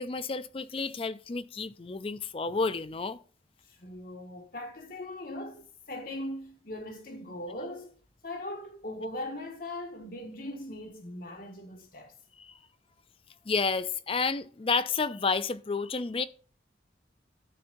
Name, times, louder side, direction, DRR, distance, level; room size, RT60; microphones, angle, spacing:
voice 1, 0.0-3.2 12.4-12.6 13.5-16.2, left 4 dB, 30° left, 0.4 m, -30 dB
voice 2, 3.7-7.9 8.2-12.1, left 1 dB, 50° left, 1.9 m, -40 dB
13.5 x 6.6 x 2.6 m
head